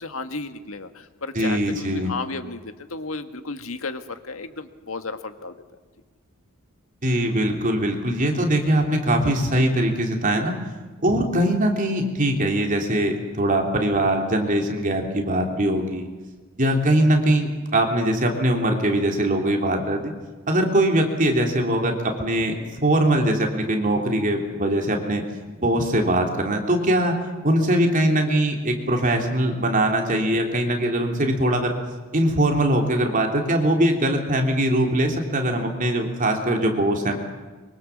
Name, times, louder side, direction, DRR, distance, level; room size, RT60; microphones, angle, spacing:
voice 1, 0.0-5.5, left 3 dB, 70° left, 8 dB, 1.7 m, -33 dB
voice 2, 1.4-2.1 7.0-10.5 11.0-16.1 16.6-20.1 20.5-25.2 25.6-27.2 27.4-31.8 32.1-37.2, right 1 dB, 35° right, 2 dB, 3.5 m, -21 dB
24.5 x 24.0 x 7.4 m, 1.3 s
head